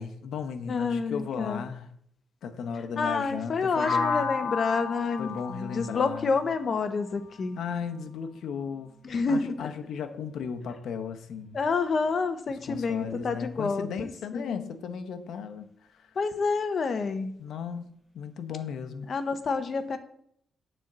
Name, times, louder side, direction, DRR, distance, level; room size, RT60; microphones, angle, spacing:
voice 1, 0.0-1.9 2.4-4.3 5.2-6.4 7.6-8.9 9.3-11.6 12.7-15.7 15.9-16.1 17.4-19.1, left 6 dB, 80° left, 7 dB, 0.9 m, -36 dB
voice 2, 0.7-1.6 3.0-7.6 9.0-9.7 11.5-14.1 14.3-14.7 16.2-17.4 19.1-20.0, left 4 dB, 45° left, 9 dB, 0.9 m, -28 dB
sound 1, 3.8-7.7, left 4 dB, 20° left, 4.0 m, -33 dB
9.2 x 4.4 x 7.4 m, 0.69 s
cardioid pair, 120°, 0 cm